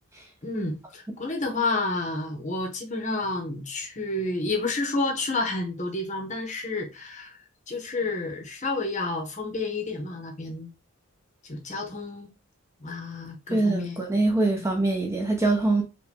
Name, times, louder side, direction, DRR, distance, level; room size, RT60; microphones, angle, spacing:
voice 1, 0.4-7.4 7.7-10.7 11.4-12.3 12.8-14.0 14.6-14.7, left 2 dB, 35° left, 1.0 m, -30 dB
voice 2, 13.5-15.8, right 2 dB, 15° right, 0.8 m, -23 dB
4.9 x 2.5 x 3.7 m
head